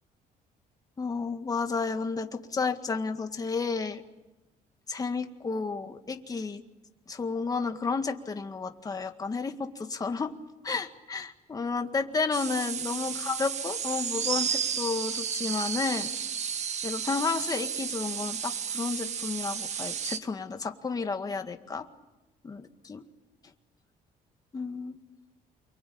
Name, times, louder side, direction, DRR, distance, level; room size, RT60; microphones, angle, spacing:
voice 1, 1.0-4.0 4.9-6.6 7.1-10.3 10.6-16.1 16.8-21.9 22.4-23.0 24.5-25.0, left 4 dB, 25° left, 6 dB, 1.9 m, -32 dB
sound 1, 12.3-20.2, right 7 dB, 45° right, 1.5 m, -32 dB
28.5 x 23.5 x 8.7 m, 1.0 s
cardioid pair, 140°, 16 cm